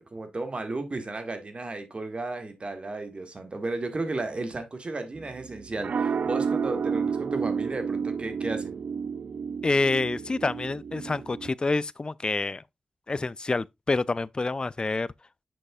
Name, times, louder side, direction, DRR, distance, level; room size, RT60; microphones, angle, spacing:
voice 1, 0.0-8.8, right 2 dB, 45° right, 1.6 m, -34 dB
sound 1, 5.2-11.5, right 6 dB, 75° right, 0.4 m, -31 dB
voice 2, 9.6-12.6 13.1-15.1, left 3 dB, 35° left, 0.4 m, -27 dB
7.8 x 6.2 x 2.3 m
cardioid pair, 55°, 3 cm